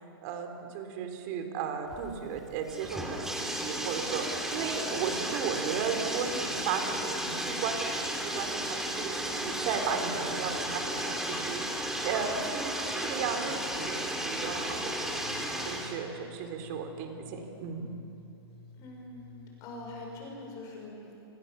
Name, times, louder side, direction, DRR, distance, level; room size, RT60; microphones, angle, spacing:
voice 1, 0.2-15.1 15.6-17.9, right 6 dB, 40° right, 5 dB, 3.9 m, -35 dB
Bathtub (filling or washing), 1.9-16.0, right 1 dB, 5° right, 2.9 m, -34 dB
sound 1, 15.0-20.3, left 3 dB, 85° left, 4.1 m, -52 dB
voice 2, 18.8-21.1, left 2 dB, 25° left, 0 dB, 5.7 m, -44 dB
29.5 x 26.5 x 7.0 m, 2.7 s
hypercardioid pair, 155°, 13 cm